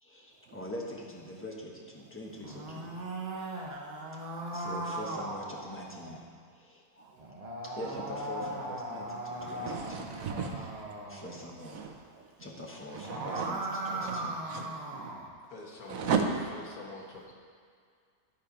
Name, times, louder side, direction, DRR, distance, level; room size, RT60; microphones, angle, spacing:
voice 1, 0.0-3.0 3.4-3.7 4.5-6.2 6.5-7.1 7.6-10.2 11.1-11.9 12.4-14.4, left 1 dB, 10° left, -2 dB, 1.0 m, -44 dB
sound 1, 2.3-6.2 7.2-11.4 12.8-15.3, right 1 dB, 35° right, 0.9 m, -38 dB
voice 2, 9.4-10.6 11.6-12.5 12.9-15.1 15.9-16.3, right 6 dB, 70° right, 3 dB, 1.2 m, -36 dB
voice 3, 15.5-16.1 16.5-17.3, left 3 dB, 85° left, -2 dB, 1.7 m, -45 dB
12.5 x 4.3 x 5.1 m, 2.1 s
omnidirectional pair, 1.5 m